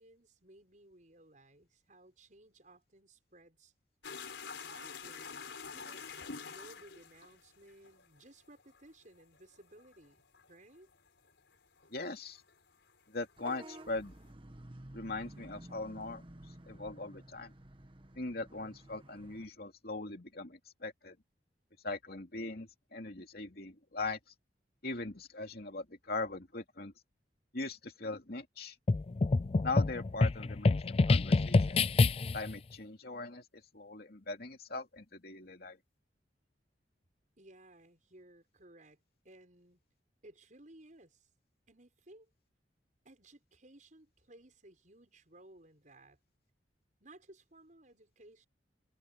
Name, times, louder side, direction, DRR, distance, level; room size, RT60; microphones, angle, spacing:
voice 1, 0.0-3.7 4.6-5.3 5.7-10.9 37.4-39.0 39.2-39.8 40.2-41.3 41.7-42.3 43.0-46.2 47.0-48.5, right 1 dB, 45° right, 6.6 m, -59 dB
sound 1, 4.0-12.6 12.8-14.2, left 5 dB, 85° left, 4.5 m, -48 dB
voice 2, 11.9-12.4 13.1-14.1 14.9-16.2 16.7-17.5 18.1-21.2 21.8-24.2 24.8-26.9 27.5-28.8 29.6-31.8 32.3-35.8, left 3 dB, 60° left, 2.8 m, -40 dB
Vehicle horn car horn honking / Bus, 13.4-19.5, right 1 dB, 30° right, 1.4 m, -52 dB
sound 2, 28.9-32.5, left 3 dB, 35° left, 0.4 m, -27 dB
head